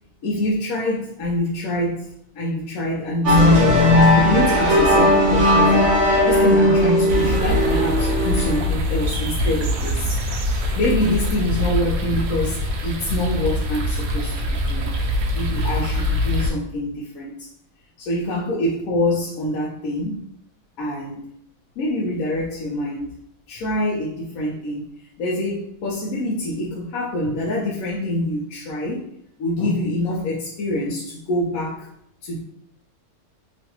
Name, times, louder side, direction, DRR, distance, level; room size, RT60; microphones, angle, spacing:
voice 1, 0.2-5.9 6.2-10.2 10.7-15.0 15.3-17.5 18.0-20.2 20.8-21.3 21.8-23.2 23.5-24.8 25.2-29.0 29.4-31.9 32.2-32.4, left 1 dB, 75° left, -4 dB, 1.0 m, -25 dB
sound 1, 3.2-8.6, left 1 dB, 60° right, 1.1 m, -16 dB
sound 2, 7.1-16.5, left 1 dB, 80° right, 1.1 m, -24 dB
3.0 x 2.5 x 2.9 m, 0.71 s
omnidirectional pair, 1.5 m